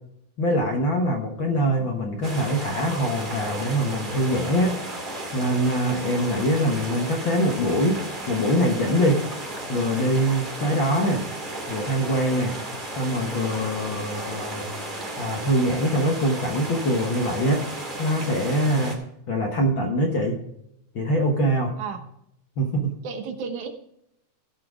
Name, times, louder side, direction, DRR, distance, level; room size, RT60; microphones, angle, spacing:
voice 1, 0.4-4.8 5.3-8.0 8.3-9.2 9.7-11.2 11.7-12.5 13.0-14.7 15.2-17.7 18.0-19.0 19.3-20.4 20.9-21.7 22.6-22.9, equal, 55° left, 1 dB, 1.4 m, -23 dB
sound 1, 2.2-18.9, right 1 dB, 20° right, 1.8 m, -34 dB
voice 2, 23.0-23.7, right 6 dB, 70° right, 6 dB, 2.4 m, -33 dB
16.5 x 5.8 x 4.9 m, 0.78 s
omnidirectional pair, 3.8 m